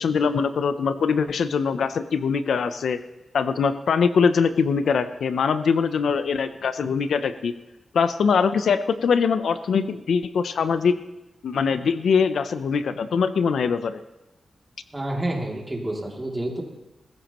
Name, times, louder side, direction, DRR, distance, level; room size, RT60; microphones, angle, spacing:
voice 1, 0.0-3.0 3.3-7.5 7.9-10.9 11.4-14.0, left 6 dB, 80° left, 12 dB, 0.6 m, -22 dB
voice 2, 14.9-16.6, right 1 dB, 20° right, -1 dB, 2.7 m, -29 dB
21.0 x 14.0 x 3.0 m, 0.99 s
wide cardioid pair, 120°, 0 cm